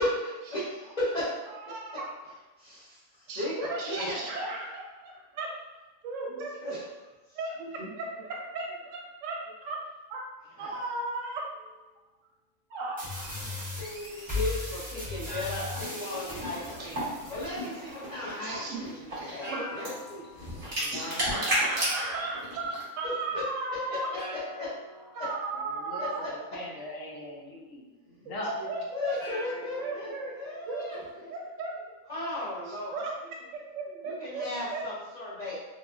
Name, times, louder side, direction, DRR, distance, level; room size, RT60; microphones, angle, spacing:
voice 1, 0.5-1.3 2.6-3.0 3.4-3.5 3.9-4.4 6.6-6.8 10.6-10.9 14.2-17.0 17.3-20.2 23.0-23.4 24.3-24.7 26.0-26.3 28.9-31.0 32.1-32.9 34.2-35.5, left 1 dB, 45° left, -10 dB, 0.5 m, -36 dB
voice 2, 1.5-2.1 3.3-5.5 6.0-6.7 7.3-9.3 9.6-9.8 10.1-10.2 10.6-11.4 12.7-13.8 18.4-18.8 19.5-19.9 20.9-24.1 25.1-26.2 28.4-29.2 29.8-30.3 30.7-31.9 32.7-34.5 34.7-34.8, right 3 dB, 70° right, -2 dB, 0.9 m, -36 dB
sound 1, 11.5-11.8 14.9-16.9 19.4-20.7 23.3-23.4 24.1-25.8 29.1-31.1, left 1 dB, 20° left, 0.9 m, -45 dB
sound 2, 13.0-18.0, left 3 dB, 10° right, 0.6 m, -37 dB
sound 3, 15.6-22.8, equal, 30° right, 0.9 m, -34 dB
voice 3, 20.8-21.4 25.5-28.7, left 1 dB, 70° left, -3 dB, 1.0 m, -40 dB
3.0 x 2.3 x 2.3 m, 1.2 s
omnidirectional pair, 1.5 m